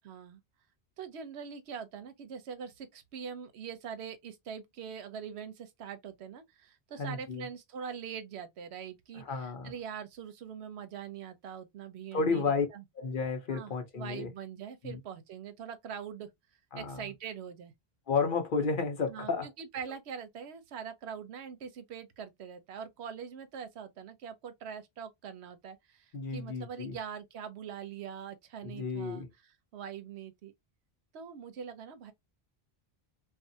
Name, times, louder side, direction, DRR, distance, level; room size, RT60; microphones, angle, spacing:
voice 1, 0.0-0.4 1.0-12.8 13.5-16.3 16.7-17.7 19.1-30.5 31.1-32.1, right 7 dB, 85° right, 0.9 m, -43 dB
voice 2, 7.0-7.5 9.1-9.7 12.1-12.7 13.0-14.3 14.8-15.0 16.7-17.0 18.1-19.5 26.1-27.0 28.6-29.3, left 4 dB, 55° left, 0.8 m, -32 dB
2.5 x 2.4 x 2.6 m
omnidirectional pair, 1.1 m